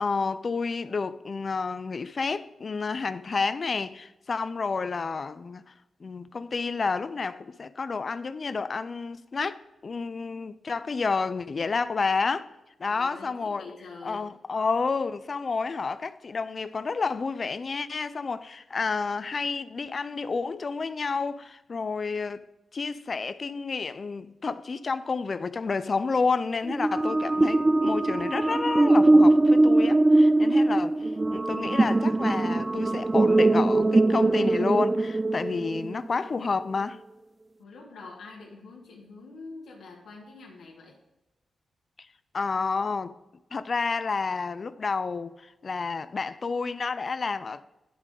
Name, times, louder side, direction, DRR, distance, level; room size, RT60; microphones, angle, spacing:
voice 1, 0.0-5.6 6.0-12.5 12.8-13.6 14.0-22.4 22.7-31.0 31.3-37.0 42.3-43.2 43.5-47.6, left 4 dB, 50° left, 0.4 m, -30 dB
voice 2, 12.9-14.3 37.6-41.0, left 3 dB, 85° left, 0.9 m, -46 dB
sound 1, 26.7-36.0, right 2 dB, 25° right, 0.3 m, -21 dB
10.0 x 3.7 x 5.1 m
cardioid pair, 70°, 0 cm